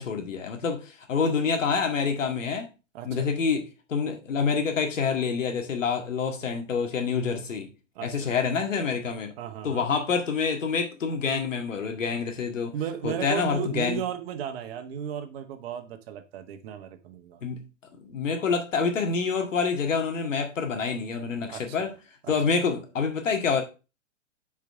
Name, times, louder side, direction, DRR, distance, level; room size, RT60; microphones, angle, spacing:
voice 1, 0.0-2.7 3.0-7.7 8.0-9.3 9.6-12.7 13.0-14.0 17.4-17.6 18.0-21.9 22.3-23.6, left 5 dB, 75° left, 2.0 m, -27 dB
voice 2, 2.9-3.3 7.9-8.3 9.4-9.9 12.7-17.4 21.5-21.9 22.2-22.3, right 9 dB, 50° right, 1.4 m, -35 dB
6.8 x 4.9 x 4.8 m
hypercardioid pair, 115°, 38 cm